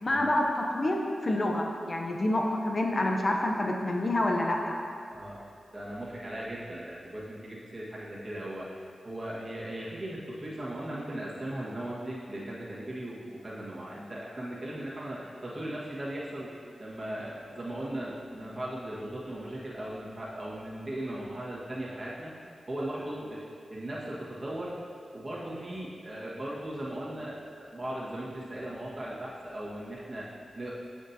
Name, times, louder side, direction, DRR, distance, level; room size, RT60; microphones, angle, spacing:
voice 1, 0.0-4.8, left 1 dB, 45° left, 1 dB, 0.7 m, -28 dB
voice 2, 5.7-8.7 9.0-16.5 16.8-22.3 22.7-23.4 23.7-24.8 25.1-30.7, right 1 dB, 35° right, -7 dB, 1.5 m, -38 dB
7.4 x 6.0 x 2.8 m, 2.3 s
cardioid pair, 45°, 0 cm